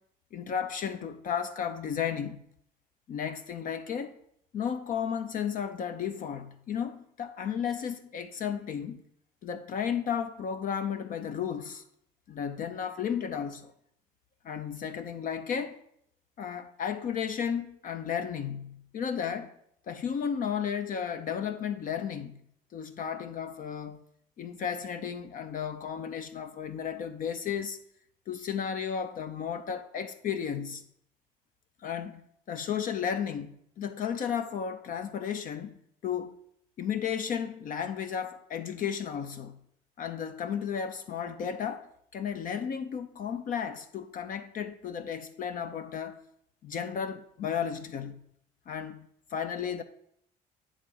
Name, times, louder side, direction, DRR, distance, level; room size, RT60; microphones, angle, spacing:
voice 1, 0.3-2.4 3.1-4.2 4.5-9.0 9.4-11.8 12.3-13.7 14.4-15.8 16.4-19.5 19.9-22.4 22.7-24.0 24.4-27.8 28.3-30.8 31.8-32.2 32.5-35.7 36.0-36.3 36.8-39.6 40.0-46.2 46.6-48.2 48.7-49.8, left 7 dB, 55° left, 0.6 m, -33 dB
9.7 x 3.7 x 6.9 m
cardioid pair, 110°, 17 cm